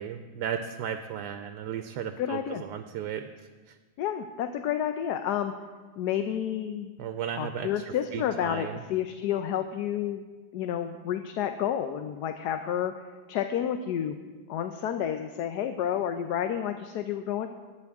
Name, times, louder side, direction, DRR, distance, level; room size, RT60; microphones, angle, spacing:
voice 1, 0.0-3.3 3.7-3.8 7.0-8.8, right 8 dB, 90° right, 8 dB, 1.2 m, -35 dB
voice 2, 2.2-2.6 4.0-5.5 6.0-6.9 7.3-10.2 10.5-12.9 13.3-14.2 14.5-17.5, left 9 dB, 80° left, 7 dB, 1.2 m, -30 dB
19.5 x 9.5 x 3.5 m, 1.4 s
omnidirectional pair, 1.7 m